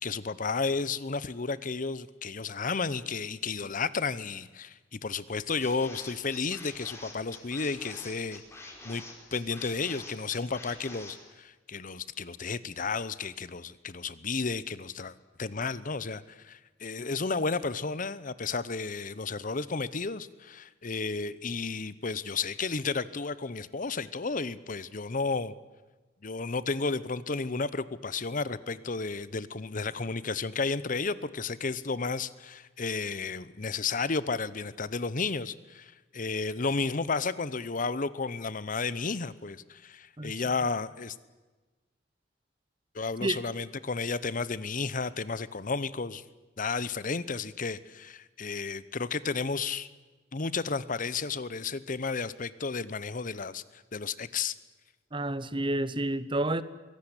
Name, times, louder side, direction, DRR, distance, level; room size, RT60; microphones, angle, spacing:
voice 1, 0.0-8.4 8.8-9.0 9.3-25.5 26.2-41.1 42.9-46.2 46.6-49.9 50.3-54.6, left 4 dB, 45° left, 0.9 m, -32 dB
sound 1, 5.6-11.1, left 2 dB, 15° left, 4.9 m, -46 dB
voice 2, 55.1-56.6, right 1 dB, 30° right, 0.9 m, -29 dB
23.5 x 17.0 x 10.0 m
head